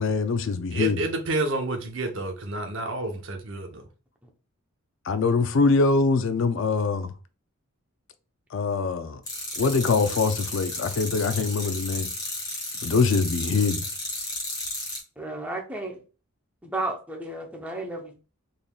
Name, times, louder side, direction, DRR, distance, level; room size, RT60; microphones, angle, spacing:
voice 1, 0.0-1.0 5.1-7.1 8.5-9.2 9.6-12.1 12.8-13.8, left 4 dB, 60° left, 0.4 m, -23 dB
voice 2, 0.7-3.9, right 2 dB, 60° right, 0.7 m, -29 dB
sound 1, 9.3-15.0, left 1 dB, 20° left, 1.7 m, -33 dB
voice 3, 15.2-16.0 16.6-18.2, right 2 dB, 5° right, 0.6 m, -33 dB
3.9 x 3.4 x 2.3 m
head